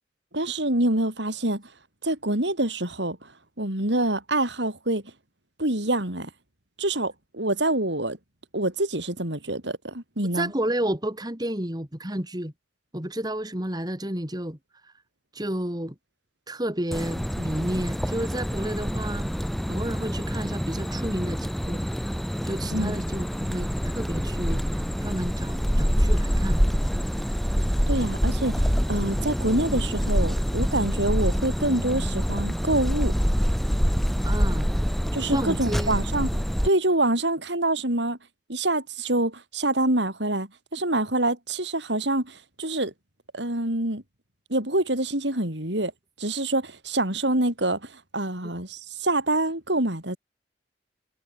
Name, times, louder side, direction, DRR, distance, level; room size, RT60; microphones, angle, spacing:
voice 1, 0.3-1.6 2.0-3.3 3.6-5.0 5.6-6.3 6.8-8.2 8.5-10.5 22.7-23.0 27.9-33.1 35.1-36.3 36.6-38.2 38.5-42.9 43.3-44.0 44.5-45.9 46.2-50.2, right 1 dB, 75° right, 6.7 m, -26 dB
voice 2, 10.3-12.5 12.9-14.6 14.8-14.9 15.3-15.9 16.5-19.3 19.7-21.8 22.4-26.6 34.2-34.7 35.3-36.0, right 1 dB, 20° right, 3.1 m, -31 dB
sound 1, 16.9-36.7, equal, ahead, 2.3 m, -26 dB
head